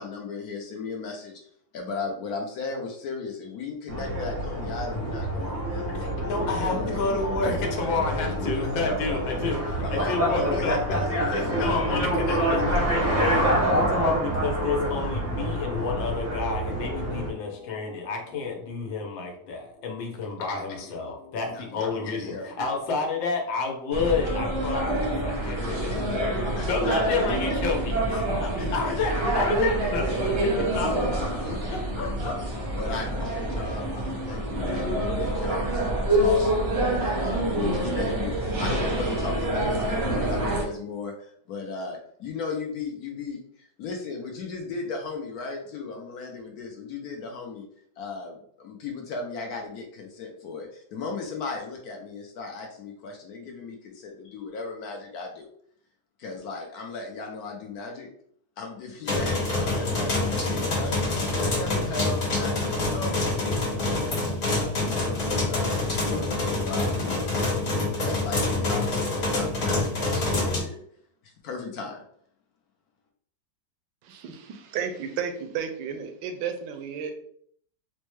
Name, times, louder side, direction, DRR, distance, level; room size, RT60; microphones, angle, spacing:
voice 1, 0.0-1.4 1.7-6.2 6.5-7.5 8.8-9.2 9.8-11.9 12.6-12.7 20.2-20.3 21.5-22.5 25.3-27.4 28.6-28.8 32.7-47.6 48.0-55.5 56.2-58.1 58.6-63.2 63.8-70.8 71.2-72.0, left 4 dB, 70° left, 2 dB, 0.9 m, -36 dB
sound 1, 3.9-17.3, equal, 15° right, 0.4 m, -27 dB
voice 2, 5.8-10.8 11.1-26.1 26.5-32.9 33.5-33.7 34.1-34.4, left 4 dB, 85° left, 1 dB, 1.5 m, -30 dB
sound 2, 23.9-40.6, right 1 dB, 50° right, 0.8 m, -26 dB
sound 3, 59.1-70.6, left 2 dB, 45° left, 1.6 m, -26 dB
voice 3, 74.0-77.1, right 7 dB, 80° right, 6 dB, 1.3 m, -33 dB
4.4 x 2.1 x 3.1 m, 0.64 s
omnidirectional pair, 2.0 m